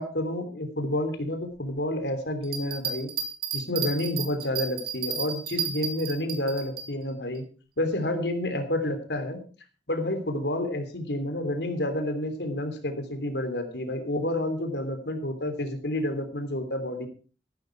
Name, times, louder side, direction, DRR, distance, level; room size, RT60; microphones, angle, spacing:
voice 1, 0.0-3.1 3.5-7.4 7.8-9.4 9.9-17.1, left 1 dB, 70° left, 7 dB, 3.2 m, -29 dB
sound 1, 2.4-6.9, right 7 dB, 55° right, 3.0 m, -32 dB
14.5 x 11.5 x 4.7 m, 0.37 s
head